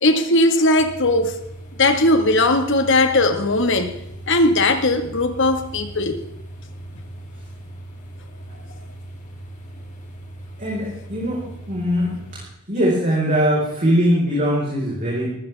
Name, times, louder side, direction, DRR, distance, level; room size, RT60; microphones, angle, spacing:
voice 1, 0.0-1.4 1.8-3.9 4.3-6.2, left 2 dB, 55° left, 7 dB, 1.7 m, -18 dB
sound 1, 0.8-12.4, right 1 dB, 35° left, 3.5 m, -39 dB
voice 2, 10.6-12.2 12.7-15.4, equal, 35° right, -5 dB, 4.7 m, -21 dB
20.0 x 15.5 x 3.5 m, 0.80 s
head